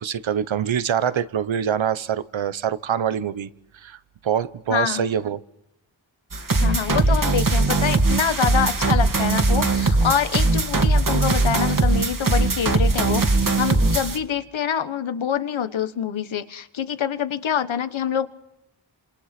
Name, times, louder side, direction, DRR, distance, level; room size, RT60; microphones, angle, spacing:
voice 1, 0.0-3.5 3.7-5.4, right 8 dB, 80° right, 15 dB, 1.1 m, -25 dB
voice 2, 4.7-5.0 6.6-18.3, left 8 dB, 80° left, 11 dB, 1.4 m, -25 dB
sound 1, 6.3-14.2, right 3 dB, 45° right, 2.6 m, -20 dB
28.0 x 27.0 x 6.0 m, 0.84 s
cardioid pair, 55°, 46 cm